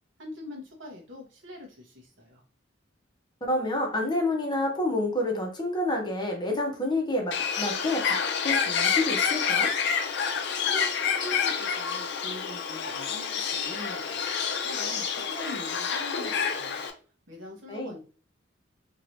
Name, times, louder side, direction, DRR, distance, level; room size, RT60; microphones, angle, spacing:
voice 1, 0.2-2.4 10.6-14.2 14.6-16.8 17.3-18.0, left 1 dB, 80° right, 1 dB, 1.1 m, -42 dB
voice 2, 3.5-8.2 8.4-9.7 17.7-17.9, left 1 dB, 25° left, 1 dB, 0.8 m, -28 dB
Bird, 7.3-16.9, left 6 dB, 65° left, 0.5 m, -28 dB
3.0 x 3.0 x 2.7 m, 0.38 s
head